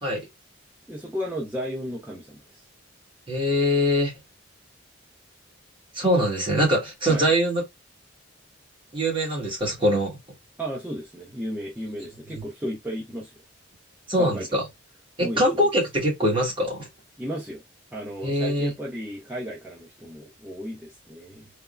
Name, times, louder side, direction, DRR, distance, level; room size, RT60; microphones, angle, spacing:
voice 1, 0.9-2.6 7.1-7.3 10.6-13.3 14.2-14.5 15.2-15.7 17.2-17.6 17.9-21.5, equal, 10° right, 0.6 m, -34 dB
voice 2, 3.3-4.1 5.9-7.6 8.9-10.2 14.1-14.6 15.2-16.9 18.2-18.7, equal, 25° right, 1.3 m, -23 dB
3.4 x 2.1 x 2.2 m
head